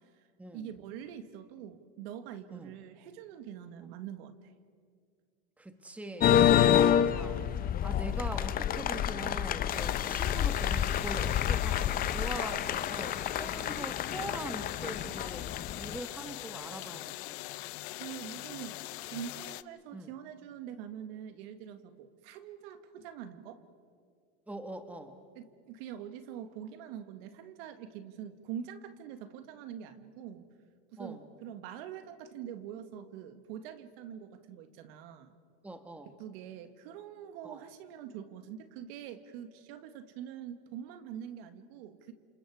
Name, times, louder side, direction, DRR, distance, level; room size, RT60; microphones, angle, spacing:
voice 1, 0.5-4.5 18.0-23.6 25.4-30.5 30.9-35.3 36.1-42.1, right 9 dB, 65° right, 10 dB, 1.8 m, -44 dB
voice 2, 5.6-7.4 7.8-15.4 15.7-17.4 19.9-20.1 24.5-25.1 31.0-31.2 35.6-36.1 37.4-37.6, right 2 dB, 5° right, 7 dB, 1.4 m, -42 dB
sound 1, 6.2-16.0, left 10 dB, 30° left, 0.8 m, -28 dB
sound 2, 9.7-19.6, left 18 dB, 75° left, 0.7 m, -42 dB
29.5 x 27.5 x 4.8 m, 2.1 s
supercardioid pair, 130°, 32 cm